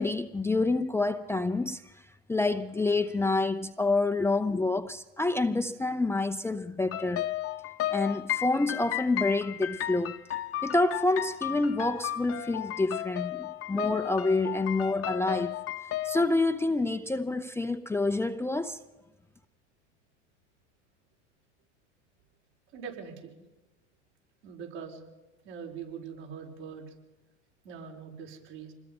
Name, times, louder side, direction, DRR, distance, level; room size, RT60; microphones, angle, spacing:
voice 1, 0.0-1.9 2.3-7.3 7.9-10.2 10.6-15.6 16.0-18.8, left 2 dB, 5° left, 0.6 m, -28 dB
sound 1, 6.9-16.2, left 13 dB, 40° left, 1.0 m, -34 dB
voice 2, 22.7-23.3 24.4-25.0 25.4-26.9 27.6-28.7, right 6 dB, 70° right, 5.2 m, -42 dB
26.0 x 20.5 x 5.6 m
hypercardioid pair, 95°, 36 cm